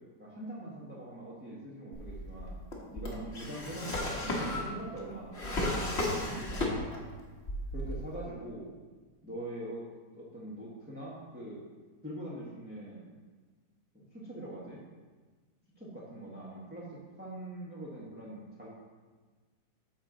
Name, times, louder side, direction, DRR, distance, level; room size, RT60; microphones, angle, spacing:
voice 1, 0.2-2.5 2.9-7.0 7.7-8.7 9.2-9.8 10.1-11.6 12.0-13.1 13.9-14.8 15.8-18.7, right 1 dB, 5° right, -8 dB, 1.3 m, -43 dB
Drawer open or close, 1.9-7.1 7.4-8.2, left 1 dB, 40° left, 1.5 m, -34 dB
8.7 x 6.8 x 4.0 m, 1.4 s
omnidirectional pair, 1.9 m